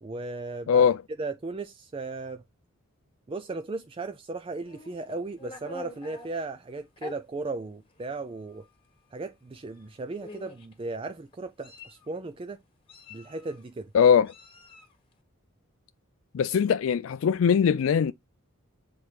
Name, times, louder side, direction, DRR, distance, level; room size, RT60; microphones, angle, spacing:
voice 1, 0.0-0.8 1.2-2.4 3.3-8.7 9.1-12.6 13.1-13.9, right 3 dB, 25° right, 0.4 m, -36 dB
voice 2, 0.7-1.0 13.9-14.3 16.3-18.1, left 7 dB, 65° left, 0.3 m, -21 dB
Meow, 4.6-6.3 7.0-7.2 8.0-8.1 8.5-8.7 9.7-9.8 10.2-10.7 11.3-12.1 12.9-13.6 14.3-15.0, left 2 dB, 25° left, 1.4 m, -46 dB
7.7 x 4.2 x 3.2 m
head